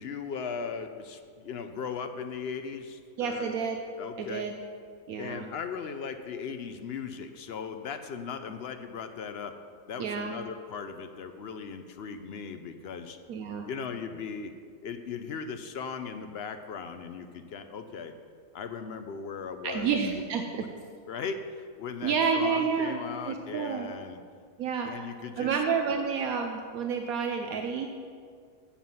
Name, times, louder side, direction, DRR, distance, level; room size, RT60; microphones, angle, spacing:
voice 1, 0.0-3.6 4.0-4.4 5.2-9.5 9.9-13.2 13.7-14.5 14.8-18.1 18.5-19.9 20.6-20.7 21.1-21.4 21.8-24.2 24.9-25.6, left 6 dB, 55° left, 8 dB, 0.7 m, -38 dB
voice 2, 3.2-3.8 4.2-4.5 5.1-5.5 10.0-10.3 13.3-13.7 19.6-20.6 22.0-23.0 23.2-23.9 24.6-24.9 25.4-27.9, right 6 dB, 80° right, 4 dB, 1.1 m, -29 dB
10.5 x 7.7 x 5.5 m, 2.1 s
omnidirectional pair, 1.5 m